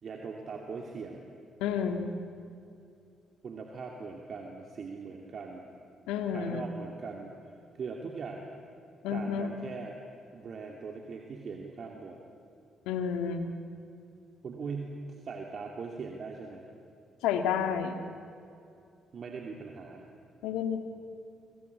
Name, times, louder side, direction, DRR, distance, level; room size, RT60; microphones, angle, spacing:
voice 1, 0.0-1.2 3.4-5.7 6.3-7.3 7.7-8.5 9.1-10.0 10.3-12.2 14.4-16.6 19.1-20.1, right 4 dB, 55° right, 1 dB, 2.6 m, -40 dB
voice 2, 1.6-2.1 6.1-6.7 9.0-9.5 12.9-13.5 17.2-18.0 20.4-20.8, left 7 dB, 80° left, 6 dB, 1.9 m, -30 dB
25.0 x 23.5 x 8.5 m, 2.5 s
hypercardioid pair, 50°, 0 cm